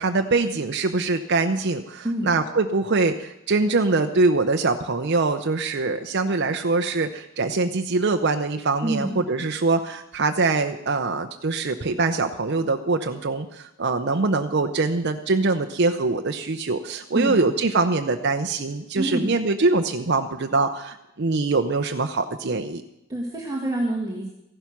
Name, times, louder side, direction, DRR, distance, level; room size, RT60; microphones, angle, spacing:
voice 1, 0.0-22.8, right 3 dB, 55° right, 5 dB, 0.7 m, -23 dB
voice 2, 8.8-9.2 17.1-17.4 19.0-19.4 23.1-24.3, right 1 dB, 15° right, -3 dB, 1.8 m, -27 dB
14.5 x 11.5 x 6.0 m, 0.87 s
head